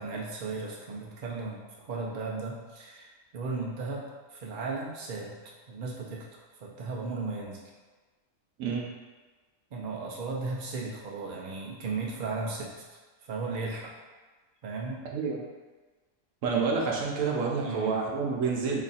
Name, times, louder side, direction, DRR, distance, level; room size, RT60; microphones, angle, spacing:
voice 1, 0.0-4.1 4.3-5.4 5.7-7.6 9.7-13.0 13.3-13.9 14.6-15.0 17.6-18.0, right 3 dB, 50° right, -2 dB, 0.6 m, -35 dB
voice 2, 8.6-8.9 15.1-15.4 16.4-18.8, right 5 dB, 80° right, -1 dB, 1.1 m, -28 dB
3.1 x 2.5 x 4.0 m, 1.3 s
omnidirectional pair, 1.4 m